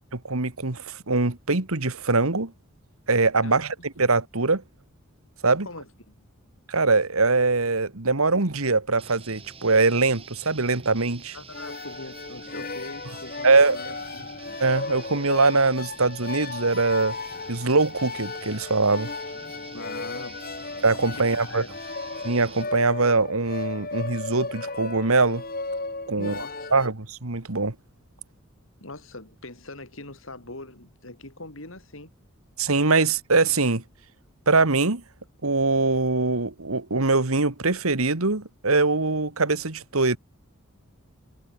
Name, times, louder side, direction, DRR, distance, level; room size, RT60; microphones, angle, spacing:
voice 1, 0.1-2.5 3.1-4.6 5.4-5.7 6.7-11.4 13.4-13.8 14.6-17.2 17.5-19.1 20.8-21.6 22.2-25.4 26.1-26.3 26.7-27.8 32.6-33.8 34.5-35.0 35.4-40.2, right 3 dB, 80° right, 2.0 m, -22 dB
voice 2, 5.6-6.1 11.3-14.3 19.7-20.4 21.2-21.7 26.2-26.8 28.8-32.1, left 2 dB, 65° left, 4.9 m, -41 dB
sound 1, 9.0-22.7, right 5 dB, 25° right, 4.8 m, -47 dB
sound 2, 11.5-26.9, left 3 dB, 40° left, 3.0 m, -35 dB
head